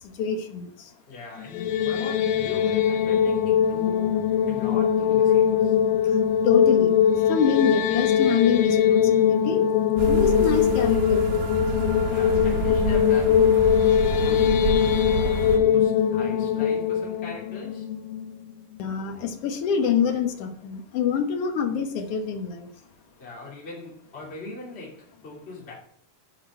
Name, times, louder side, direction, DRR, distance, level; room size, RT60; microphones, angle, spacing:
voice 1, 0.0-0.9 6.0-6.2 6.4-9.7 10.1-11.4 18.8-22.7, left 7 dB, 70° left, 1.5 m, -26 dB
voice 2, 1.1-5.8 12.0-13.6 14.1-17.9 23.2-25.7, left 3 dB, 20° left, 2.4 m, -40 dB
sound 1, 1.4-18.5, left 8 dB, 85° left, 2.3 m, -21 dB
sound 2, 10.0-15.6, right 4 dB, 70° right, 2.7 m, -29 dB
9.4 x 5.2 x 5.4 m
omnidirectional pair, 4.0 m